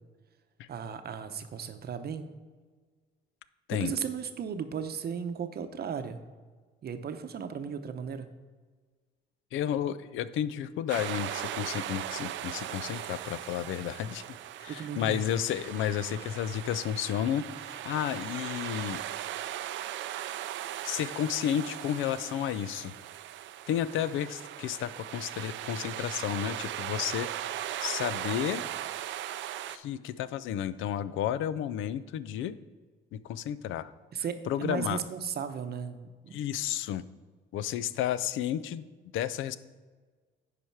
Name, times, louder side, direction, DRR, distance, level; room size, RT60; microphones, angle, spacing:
voice 1, 0.7-2.3 3.7-6.2 6.8-8.3 14.7-15.2 34.1-36.4, right 7 dB, 50° right, 9 dB, 0.8 m, -36 dB
voice 2, 9.5-14.2 14.6-19.0 20.8-22.9 23.7-27.3 27.8-28.6 29.7-32.6 33.1-33.9 34.5-35.0 36.3-37.0 37.5-38.9 39.1-39.6, left 10 dB, 80° left, 16 dB, 0.4 m, -32 dB
sound 1, 10.9-29.8, right 12 dB, 75° right, 0.4 m, -38 dB
9.8 x 5.0 x 4.6 m, 1.4 s
cardioid pair, 90°, 20 cm